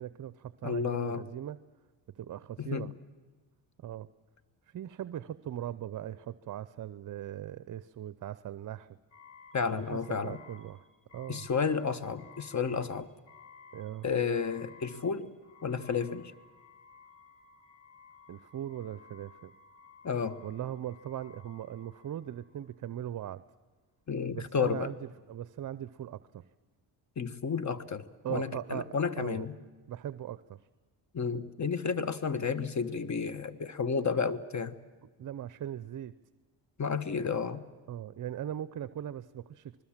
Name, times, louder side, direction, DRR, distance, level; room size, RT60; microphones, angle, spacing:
voice 1, 0.0-1.6 2.1-2.9 3.8-4.1 4.7-9.0 9.7-10.8 11.1-11.5 13.7-14.1 18.3-19.5 20.4-23.4 24.3-26.4 28.2-29.5 29.9-30.7 35.0-36.1 37.9-39.8, right 11 dB, 45° right, 15 dB, 0.6 m, -39 dB
voice 2, 0.6-1.3 2.6-2.9 9.5-10.4 11.3-13.1 14.0-16.3 20.0-20.4 24.1-24.9 27.2-29.5 31.1-34.7 36.8-37.6, left 6 dB, 40° left, 14 dB, 1.3 m, -32 dB
sound 1, 9.1-22.7, left 5 dB, 75° left, 5.0 m, -56 dB
26.5 x 20.5 x 7.4 m, 1.3 s
cardioid pair, 70°, 45 cm